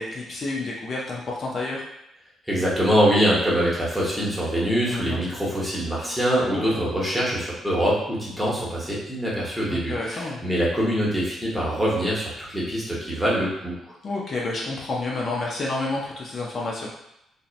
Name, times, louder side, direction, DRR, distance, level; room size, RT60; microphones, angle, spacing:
voice 1, 0.0-1.8 4.9-5.2 6.5-6.9 9.7-10.4 14.0-16.9, left 2 dB, 45° left, -3 dB, 0.4 m, -30 dB
voice 2, 2.5-13.7, equal, 5° right, -7 dB, 0.9 m, -24 dB
2.6 x 2.1 x 2.4 m, 0.83 s
cardioid pair, 90°, 0 cm